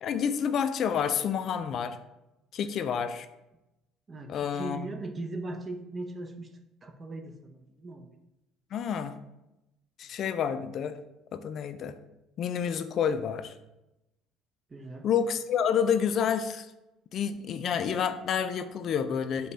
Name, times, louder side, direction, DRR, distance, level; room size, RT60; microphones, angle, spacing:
voice 1, 0.0-2.0 2.5-3.3 4.3-4.9 8.7-9.2 10.0-11.0 11.3-11.9 12.4-13.5 15.0-16.7 17.1-19.5, left 7 dB, 55° left, 10 dB, 0.3 m, -29 dB
voice 2, 4.1-6.5 6.8-8.1 14.7-15.1, right 2 dB, 30° right, 6 dB, 0.6 m, -39 dB
5.2 x 2.2 x 3.9 m, 0.93 s
supercardioid pair, 75°, 0 cm